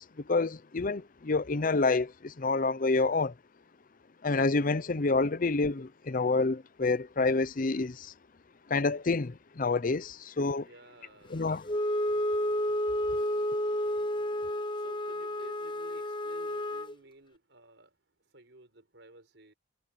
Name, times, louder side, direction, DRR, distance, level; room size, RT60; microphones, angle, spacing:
voice 1, 0.0-3.3 4.2-8.1 8.7-10.7 11.3-11.8, left 3 dB, 50° left, 0.7 m, -28 dB
voice 2, 10.6-11.4 12.2-13.9 14.7-19.5, right 2 dB, 70° right, 7.2 m, -56 dB
Wind instrument woodwind instrument, 11.6-16.9, left 1 dB, 25° left, 0.9 m, -31 dB
head